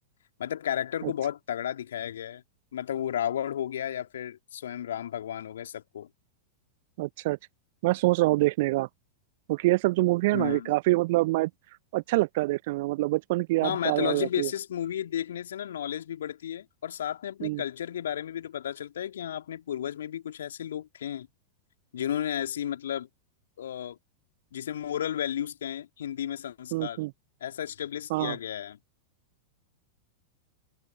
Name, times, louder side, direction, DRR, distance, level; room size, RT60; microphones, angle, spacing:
voice 1, 0.4-2.4 2.7-6.1 10.3-10.7 13.6-21.3 21.9-23.1 23.6-24.0 24.5-27.1 27.4-28.8, left 10 dB, 65° left, 2.8 m, -33 dB
voice 2, 7.0-7.4 7.8-8.9 9.5-11.5 11.9-14.5 17.4-17.6 26.7-27.1 28.1-28.4, right 20 dB, 50° right, 0.5 m, -25 dB
figure-of-eight pair, 95°, 0 cm